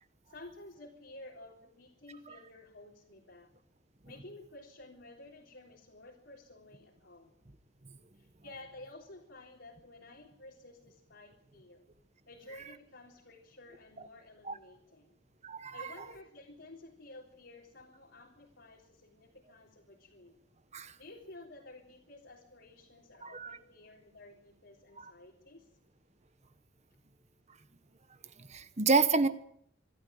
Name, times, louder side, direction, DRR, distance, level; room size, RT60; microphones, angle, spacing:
voice 1, 0.3-3.5 4.1-7.3 8.1-11.8 12.3-15.2 15.7-20.4 21.0-25.7, left 2 dB, 60° left, -2 dB, 3.8 m, -53 dB
voice 2, 15.4-15.7 20.7-20.9 23.2-23.6 25.0-25.1 28.5-29.3, right 4 dB, 35° right, 12 dB, 1.1 m, -28 dB
25.5 x 13.5 x 9.2 m, 0.70 s
head